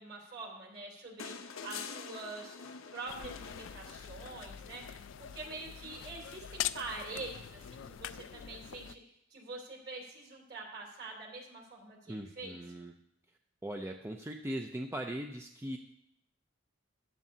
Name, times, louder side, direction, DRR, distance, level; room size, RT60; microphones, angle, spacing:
voice 1, 0.0-2.6 2.9-9.0 9.3-12.6, right 3 dB, 50° right, -2 dB, 3.1 m, -45 dB
sound 1, 1.2-4.5 6.0-6.1, left 6 dB, 80° left, 0.8 m, -46 dB
sound 2, 3.1-8.9, left 11 dB, 65° left, 0.3 m, -43 dB
voice 2, 12.1-12.9 13.6-15.8, right 1 dB, 10° right, 3 dB, 0.4 m, -39 dB
14.5 x 10.5 x 2.8 m, 0.78 s
head